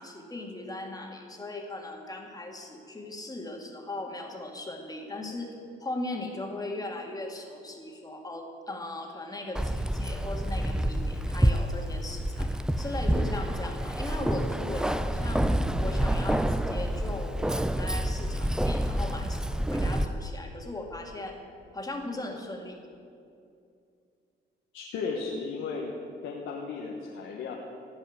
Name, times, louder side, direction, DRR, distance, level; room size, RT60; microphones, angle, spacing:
voice 1, 0.0-15.5 15.8-21.4 21.7-22.8, left 2 dB, 20° left, 1 dB, 2.1 m, -38 dB
Keys jangling, 9.5-20.0, right 1 dB, 5° right, 0.5 m, -28 dB
voice 2, 24.7-25.9 26.2-27.5, left 4 dB, 85° left, -1 dB, 1.3 m, -35 dB
16.0 x 5.6 x 9.3 m, 2.5 s
cardioid pair, 90°, 20 cm